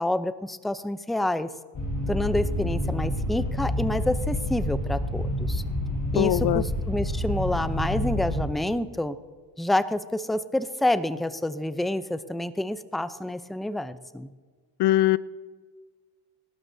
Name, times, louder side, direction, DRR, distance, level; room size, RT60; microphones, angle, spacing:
voice 1, 0.0-1.5 2.1-5.6 6.1-9.2 9.6-14.3, left 1 dB, ahead, 12 dB, 0.6 m, -28 dB
sound 1, 1.7-8.5, left 1 dB, 50° left, 5.0 m, -28 dB
voice 2, 6.1-6.6 14.8-15.2, left 15 dB, 70° left, 18 dB, 0.5 m, -21 dB
24.5 x 12.0 x 2.8 m, 1.5 s
supercardioid pair, 70°, 42 cm